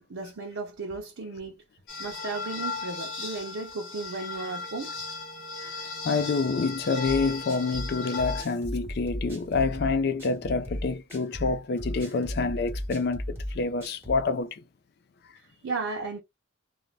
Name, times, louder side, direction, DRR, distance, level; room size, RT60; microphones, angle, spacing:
voice 1, 0.0-1.6 2.0-5.0 15.4-16.2, right 3 dB, 80° right, 0.6 m, -35 dB
sound 1, 1.9-8.4, left 4 dB, 85° left, 1.1 m, -36 dB
voice 2, 6.0-14.6, left 4 dB, 55° left, 0.3 m, -27 dB
sound 2, 7.0-14.3, equal, 10° right, 1.1 m, -36 dB
2.5 x 2.1 x 3.2 m
head